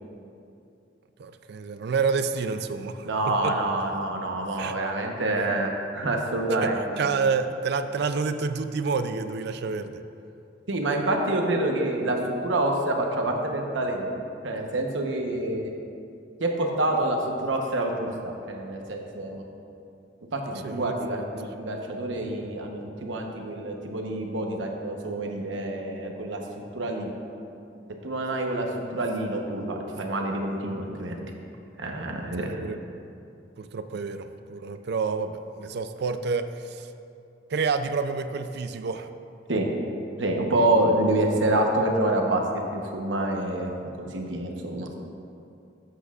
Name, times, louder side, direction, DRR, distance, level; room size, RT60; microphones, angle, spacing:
voice 1, 1.2-3.6 4.6-4.8 6.6-10.0 20.6-20.9 32.3-32.8 33.6-36.9 37.5-39.1, right 5 dB, 60° right, 10 dB, 0.4 m, -29 dB
voice 2, 3.0-6.8 10.7-12.2 12.4-15.7 16.4-19.4 20.3-27.1 28.0-31.1 31.8-32.6 39.5-39.7 40.2-42.4 42.7-43.7 44.0-44.9, right 1 dB, 85° right, 1 dB, 1.0 m, -27 dB
12.0 x 7.8 x 2.4 m, 2.6 s
head